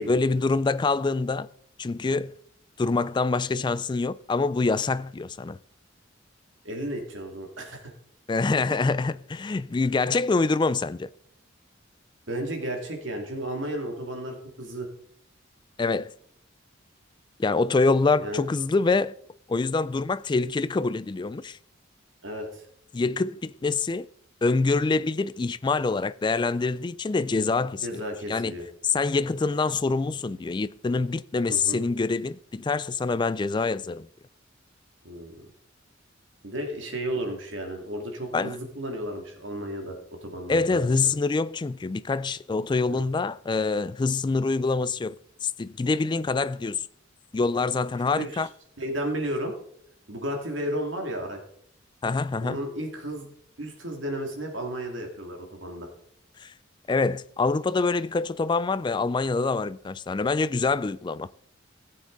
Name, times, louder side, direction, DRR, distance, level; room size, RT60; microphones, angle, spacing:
voice 1, 0.1-1.5 1.8-2.3 2.8-5.6 8.3-11.1 15.8-16.1 17.4-19.1 19.5-21.6 22.9-24.1 24.4-28.0 28.3-28.6 28.8-34.1 38.3-38.6 40.5-45.2 45.4-46.9 47.3-48.5 52.0-52.6 56.4-56.5 56.9-61.3, left 3 dB, 25° left, 0.3 m, -25 dB
voice 2, 6.6-7.8 12.3-14.9 18.2-18.4 22.2-22.6 27.8-28.6 31.5-31.8 35.0-35.5 36.4-41.1 42.9-43.0 48.2-48.5 48.8-49.5 50.1-51.4 52.4-53.3 53.6-55.9, right 1 dB, 70° right, 2.4 m, -33 dB
16.5 x 7.4 x 3.9 m
head